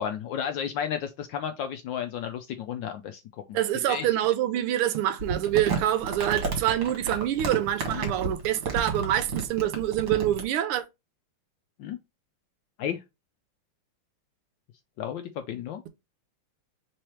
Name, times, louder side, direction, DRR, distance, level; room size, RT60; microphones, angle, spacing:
voice 1, 0.0-3.2 3.5-3.6 3.9-4.1 7.9-8.1 11.8-12.0 12.8-13.0 15.0-15.8, left 8 dB, 75° left, 1.1 m, -32 dB
voice 2, 3.5-10.8, right 12 dB, 85° right, 1.5 m, -26 dB
Crumpling crinkling, 5.2-10.4, right 4 dB, 55° right, 1.8 m, -31 dB
3.8 x 3.2 x 4.2 m
omnidirectional pair, 2.4 m